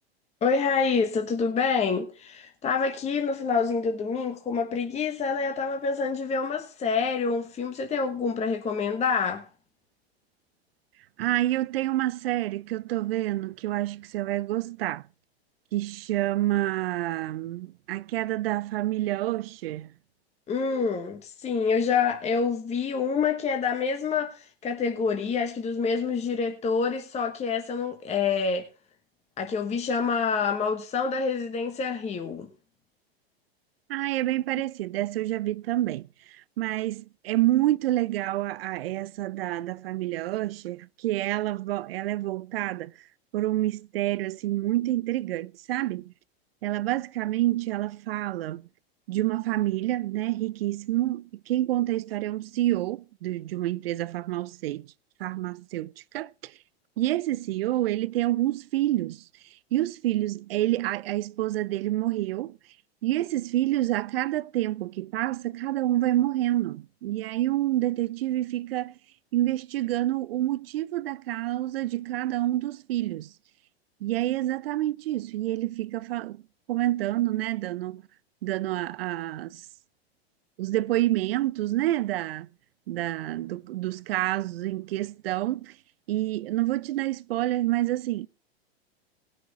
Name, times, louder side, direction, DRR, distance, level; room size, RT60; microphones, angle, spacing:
voice 1, 0.4-9.5 20.5-28.7 29.4-32.5, left 5 dB, 20° left, 1.3 m, -27 dB
voice 2, 11.2-15.0 15.7-19.9 33.9-42.9 43.3-46.1 46.6-48.7 49.1-54.9 55.2-56.5 57.0-59.2 59.7-62.6 63.0-68.9 69.3-73.3 74.0-76.4 76.7-78.0 78.4-79.7 80.6-82.5 82.9-85.8 86.1-88.3, right 15 dB, 65° right, 0.6 m, -28 dB
19.0 x 6.4 x 4.1 m
hypercardioid pair, 105°, 32 cm